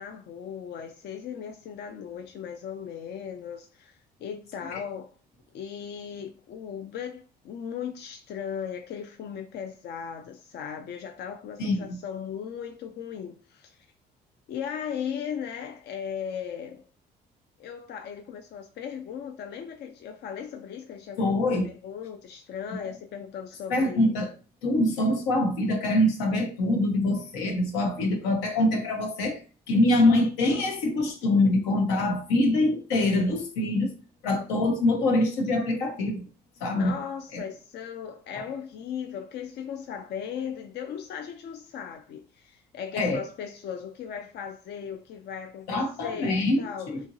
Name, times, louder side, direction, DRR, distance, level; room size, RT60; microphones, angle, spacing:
voice 1, 0.0-5.1 5.5-13.8 14.5-16.8 17.6-24.1 36.7-47.0, left 8 dB, 50° left, 0.4 m, -37 dB
voice 2, 21.2-21.7 22.8-22.9 23.7-24.3 24.6-29.4 29.7-33.9 34.2-36.3 36.6-36.9 37.3-37.4 38.4-38.5 42.9-43.2 45.7-47.0, left 1 dB, 80° left, 0.7 m, -24 dB
2.9 x 2.4 x 2.6 m
hypercardioid pair, 55°, 21 cm